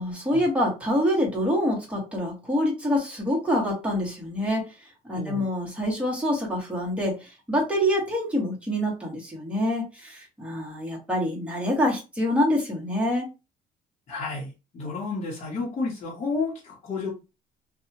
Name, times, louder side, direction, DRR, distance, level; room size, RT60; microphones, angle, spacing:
voice 1, 0.0-4.8 5.0-13.3, equal, 5° right, -2 dB, 1.3 m, -26 dB
voice 2, 5.1-5.5 14.1-17.1, left 3 dB, 40° left, -4 dB, 1.0 m, -31 dB
2.7 x 2.3 x 2.8 m, 0.28 s
cardioid pair, 110°, 17 cm